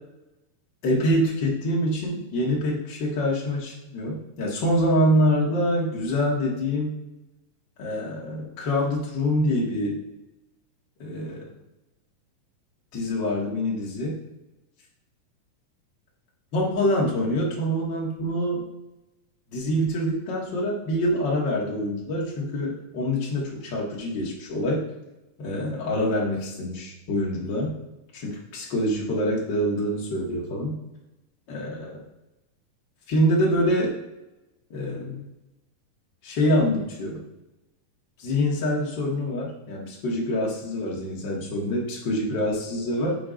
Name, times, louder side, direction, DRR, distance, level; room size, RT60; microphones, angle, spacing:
voice 1, 0.8-6.9 7.8-10.0 11.0-11.5 12.9-14.2 16.5-18.6 19.5-24.8 25.4-27.7 28.1-30.8 31.5-32.0 33.1-34.0 34.7-35.3 36.2-37.2 38.2-43.2, equal, 45° left, -3 dB, 1.5 m, -25 dB
9.1 x 5.9 x 2.5 m, 0.97 s
omnidirectional pair, 4.1 m